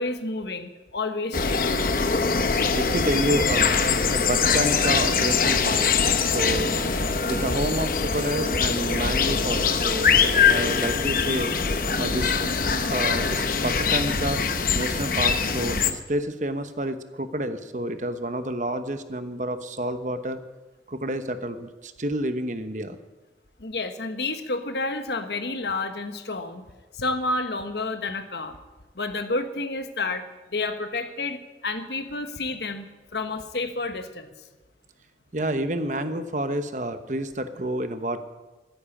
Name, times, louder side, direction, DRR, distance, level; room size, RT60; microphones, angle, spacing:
voice 1, 0.0-1.8 23.6-26.6 26.9-28.6 28.9-30.2 30.5-34.3, left 3 dB, 75° left, 8 dB, 1.3 m, -30 dB
sound 1, 1.3-15.9, left 5 dB, 50° left, 0.9 m, -23 dB
voice 2, 2.7-5.9 6.3-6.8 7.2-11.5 12.0-12.6 12.9-20.4 20.9-23.0 35.3-38.2, right 1 dB, 45° right, 9 dB, 1.0 m, -29 dB
14.0 x 10.5 x 8.7 m, 1.2 s
head